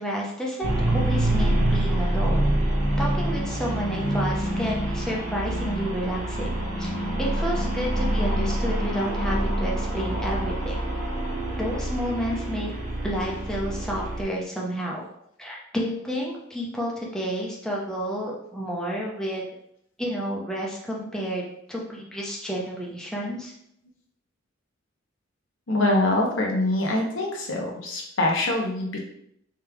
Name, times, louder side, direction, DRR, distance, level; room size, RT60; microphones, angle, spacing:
voice 1, 0.0-2.5 3.0-6.5 6.8-6.9 7.2-10.8 11.6-12.7 13.0-15.1 15.4-19.4 20.0-23.5, equal, 5° left, -3 dB, 0.7 m, -30 dB
sound 1, 0.6-14.2, right 1 dB, 45° right, 1.0 m, -26 dB
voice 2, 25.7-29.0, left 1 dB, 75° left, 0 dB, 1.0 m, -24 dB
3.5 x 3.3 x 3.4 m, 0.72 s
head